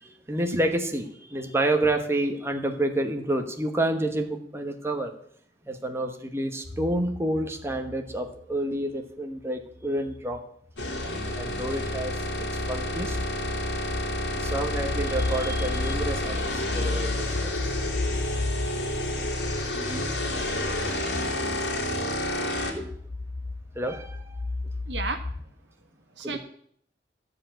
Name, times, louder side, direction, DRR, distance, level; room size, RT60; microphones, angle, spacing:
voice 1, 0.0-5.1 5.7-10.4 11.4-13.2 14.4-17.5 19.0-19.1 19.6-20.0 21.2-21.5 22.7-22.9 23.7-24.4 26.2-26.4, right 1 dB, 15° right, 4 dB, 1.1 m, -29 dB
sound 1, 6.6-8.4 9.8-10.4 10.7-25.4, left 2 dB, 45° left, 0.6 m, -35 dB
sound 2, 10.8-22.7, left 1 dB, 90° left, 2.7 m, -30 dB
voice 2, 18.7-19.0 20.1-20.6 24.9-25.2 26.2-26.4, right 3 dB, 85° right, 7 dB, 1.5 m, -35 dB
13.0 x 4.9 x 8.9 m, 0.64 s
head